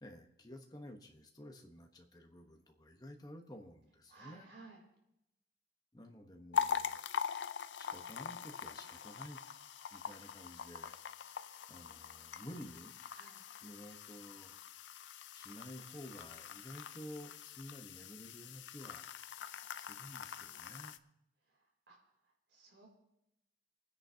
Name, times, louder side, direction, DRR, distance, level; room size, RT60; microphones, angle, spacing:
voice 1, 0.0-4.5 5.9-7.0 7.8-9.4 9.9-10.9 11.7-12.9 13.6-14.6 15.3-19.1 19.8-21.0, equal, 20° left, 3 dB, 1.1 m, -52 dB
voice 2, 4.1-4.8 13.1-13.4 21.5-22.0 22.5-22.9, right 3 dB, 80° right, 0 dB, 3.4 m, -57 dB
sound 1, 6.5-21.0, left 7 dB, 85° left, 0.5 m, -43 dB
26.5 x 9.7 x 2.9 m, 0.85 s
head